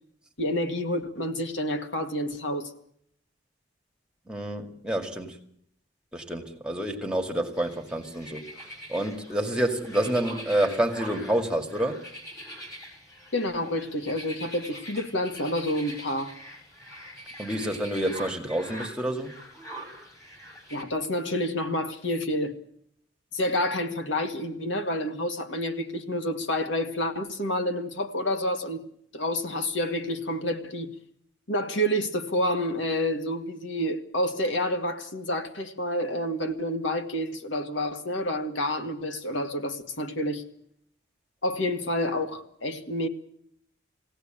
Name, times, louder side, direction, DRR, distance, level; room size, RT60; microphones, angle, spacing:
voice 1, 0.4-2.7 13.3-16.3 20.7-22.6 23.3-28.8 29.1-30.9 31.5-40.5 41.4-43.1, left 1 dB, 75° left, 2.0 m, -29 dB
voice 2, 4.3-5.4 6.1-8.4 8.9-12.0 17.4-19.3, right 1 dB, 5° right, 2.2 m, -28 dB
sound 1, 7.5-20.8, equal, 15° left, 6.3 m, -43 dB
22.0 x 17.0 x 9.0 m
head